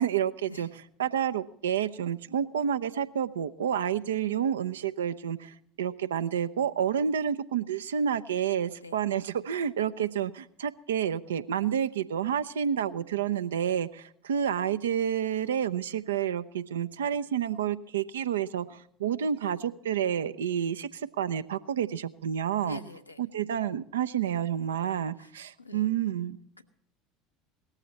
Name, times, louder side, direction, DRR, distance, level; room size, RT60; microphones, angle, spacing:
voice 1, 0.0-22.8 23.2-26.4, right 9 dB, 70° right, 13 dB, 0.6 m, -29 dB
voice 2, 22.6-23.2 25.2-25.3 25.6-25.9 26.6-26.7, left 1 dB, 85° left, 6 dB, 1.0 m, -45 dB
18.0 x 14.0 x 4.2 m, 0.71 s
figure-of-eight pair, 70°, 0 cm